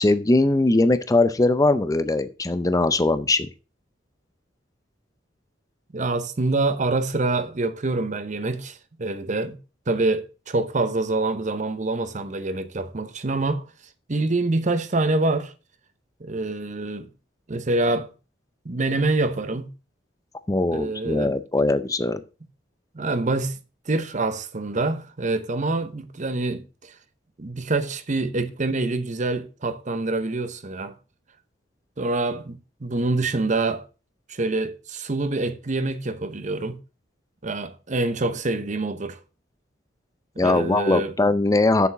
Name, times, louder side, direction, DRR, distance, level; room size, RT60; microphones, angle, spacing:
voice 1, 0.0-3.5 20.5-22.2 40.4-41.9, left 2 dB, 20° left, 0.5 m, -20 dB
voice 2, 5.9-9.6 9.9-13.7 14.1-15.5 16.2-17.1 17.5-18.1 18.6-19.7 20.7-21.4 22.9-23.6 23.9-26.9 27.4-30.9 32.0-33.8 34.3-36.8 37.4-39.2 40.4-41.1, right 2 dB, 40° right, 0.8 m, -26 dB
7.0 x 7.0 x 5.8 m
head